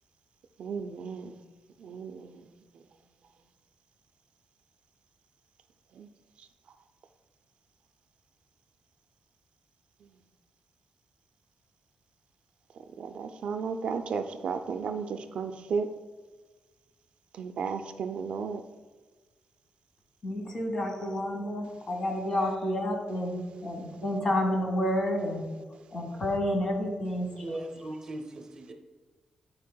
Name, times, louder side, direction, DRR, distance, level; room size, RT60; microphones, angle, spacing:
voice 1, 0.6-1.4 1.8-2.4 5.9-6.1 13.0-15.9 17.3-18.6, right 5 dB, 70° right, 7 dB, 0.4 m, -34 dB
voice 2, 20.2-25.5 25.9-27.4, left 1 dB, 40° left, 2 dB, 1.3 m, -30 dB
voice 3, 27.4-28.7, right 1 dB, 25° right, 4 dB, 0.7 m, -38 dB
11.0 x 4.6 x 2.2 m, 1.3 s
wide cardioid pair, 160°, 2 cm